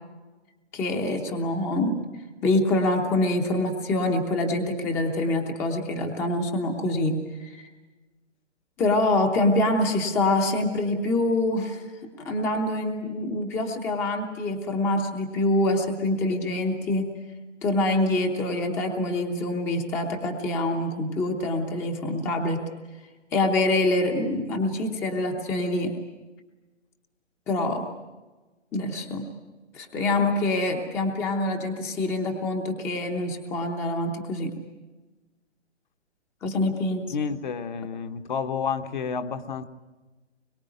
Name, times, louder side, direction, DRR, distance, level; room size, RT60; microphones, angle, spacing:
voice 1, 0.7-2.0 2.4-7.6 8.8-11.8 12.2-17.1 17.6-22.6 23.3-25.9 27.5-27.8 28.7-29.3 29.7-34.5 36.4-37.1, left 2 dB, 5° left, 3 dB, 0.8 m, -25 dB
voice 2, 37.1-39.7, left 6 dB, 40° left, 8 dB, 1.2 m, -30 dB
25.0 x 22.5 x 9.4 m, 1.2 s
hypercardioid pair, 155°, 36 cm